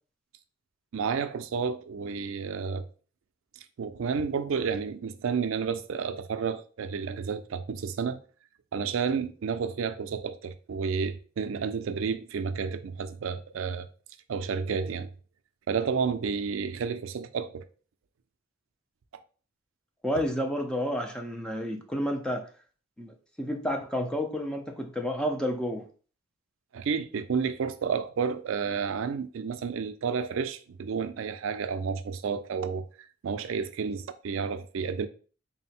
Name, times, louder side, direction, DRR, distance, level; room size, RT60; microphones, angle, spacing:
voice 1, 0.9-2.9 3.8-8.2 8.7-13.9 14.3-15.1 15.7-17.6 26.7-32.8 33.2-35.1, right 6 dB, 70° right, 0.4 m, -31 dB
voice 2, 20.0-22.5 23.0-25.9, equal, 5° left, 0.4 m, -30 dB
3.8 x 2.1 x 4.2 m
head